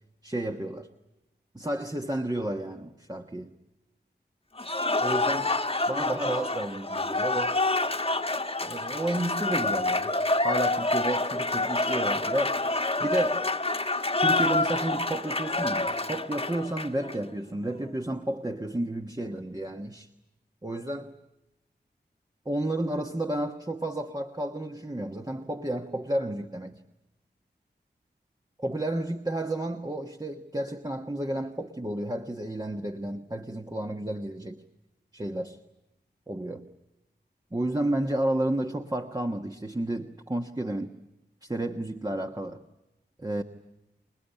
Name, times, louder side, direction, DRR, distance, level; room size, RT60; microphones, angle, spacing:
voice 1, 0.2-0.9 1.5-3.5 5.0-5.5 5.9-7.6 8.6-10.1 10.4-12.6 13.0-13.5 14.2-20.1 20.6-21.1 22.4-26.8 28.6-34.6 35.1-35.6 36.3-36.7 37.5-40.9 41.4-42.6 43.2-43.4, right 1 dB, 20° right, 4 dB, 1.3 m, -31 dB
Cheering / Applause, 4.6-17.2, left 2 dB, 30° left, 1.4 m, -27 dB
27.5 x 19.5 x 10.0 m, 0.94 s
cardioid pair, 45°, 18 cm